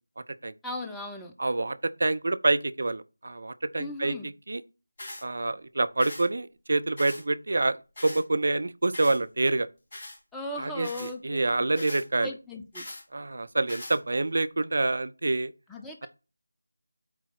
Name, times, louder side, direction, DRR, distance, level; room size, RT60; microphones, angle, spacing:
voice 1, 0.6-1.3 3.8-4.3 10.3-11.7 12.2-12.9 15.7-16.1, left 1 dB, 5° left, 0.5 m, -37 dB
voice 2, 1.4-4.1 4.5-4.6 5.2-7.8 8.0-9.7 10.6-12.3 13.1-15.5, right 2 dB, 50° right, 0.5 m, -27 dB
sound 1, 5.0-5.2 6.0-6.3 7.0-7.2 8.0-8.2 8.9-9.2 9.9-10.2 10.8-11.1 11.8-12.1 12.7-13.0 13.7-14.0, left 1 dB, 30° left, 2.6 m, -41 dB
8.2 x 3.0 x 5.6 m
figure-of-eight pair, 165°, 0 cm